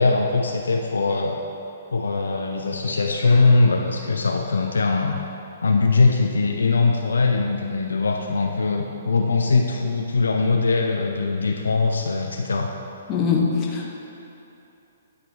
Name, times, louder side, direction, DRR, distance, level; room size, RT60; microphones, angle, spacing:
voice 1, 0.0-1.4 1.9-5.2 5.6-12.7, left 3 dB, 65° left, 2 dB, 0.4 m, -21 dB
voice 2, 13.1-14.0, left 5 dB, 25° left, -1 dB, 0.8 m, -22 dB
9.4 x 3.7 x 3.4 m, 2.9 s
figure-of-eight pair, 120°, 0 cm